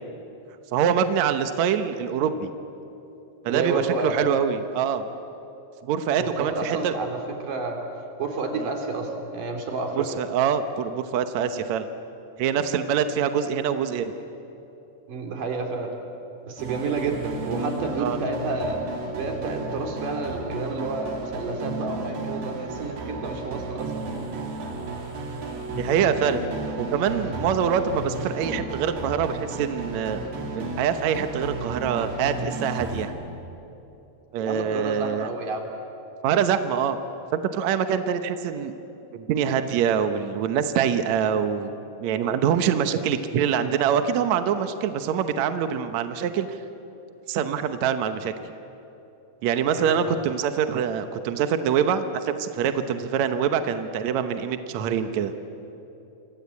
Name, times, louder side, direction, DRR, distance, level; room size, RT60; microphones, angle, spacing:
voice 1, 0.7-2.5 3.4-5.0 5.8-6.9 8.5-8.7 10.0-11.9 12.4-14.1 18.0-18.2 23.0-23.2 25.7-30.2 30.6-33.1 34.3-35.3 36.2-37.0 37.3-38.7 39.1-41.7 42.0-46.6 47.3-48.3 49.4-55.3, right 8 dB, 75° right, 9 dB, 1.7 m, -25 dB
voice 2, 3.5-4.2 6.2-7.8 8.2-10.1 15.1-15.9 16.4-18.8 19.1-23.9 26.6-26.9 34.4-35.7 49.6-50.2 54.7-55.0, right 3 dB, 55° right, 3 dB, 4.4 m, -30 dB
sound 1, 16.6-33.1, right 2 dB, 90° right, 4.9 m, -33 dB
29.0 x 24.5 x 8.4 m, 3.0 s
omnidirectional pair, 4.6 m